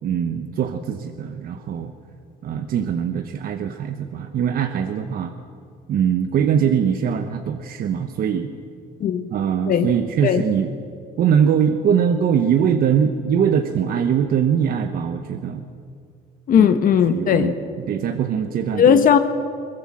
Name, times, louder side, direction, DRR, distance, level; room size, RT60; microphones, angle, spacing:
voice 1, 0.0-1.9 2.4-5.3 5.9-8.5 9.3-10.7 11.2-15.7 16.6-16.7 17.1-17.6 17.9-19.0, right 8 dB, 60° right, 7 dB, 1.1 m, -22 dB
voice 2, 16.5-17.5 18.7-19.2, left 8 dB, 55° left, 9 dB, 1.2 m, -16 dB
22.5 x 19.5 x 7.6 m, 2.3 s
cardioid pair, 110°, 17 cm